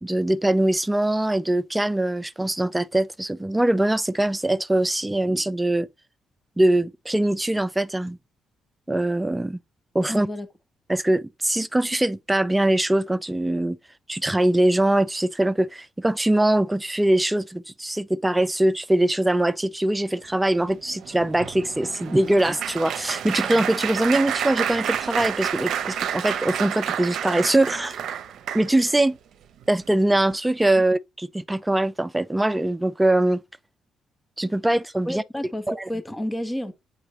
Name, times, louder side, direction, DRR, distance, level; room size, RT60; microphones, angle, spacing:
voice 1, 0.0-5.9 6.6-8.2 8.9-9.6 9.9-10.3 10.9-13.8 14.1-28.0 28.5-29.2 29.7-33.4 34.4-35.2 35.7-35.8, right 1 dB, 10° right, 0.4 m, -22 dB
voice 2, 10.1-10.5 35.1-36.7, left 1 dB, 10° left, 0.8 m, -30 dB
Applause, 20.7-29.0 29.6-29.9 30.1-30.3, right 9 dB, 70° right, 0.6 m, -29 dB
8.9 x 3.8 x 3.1 m
cardioid pair, 90°, 0 cm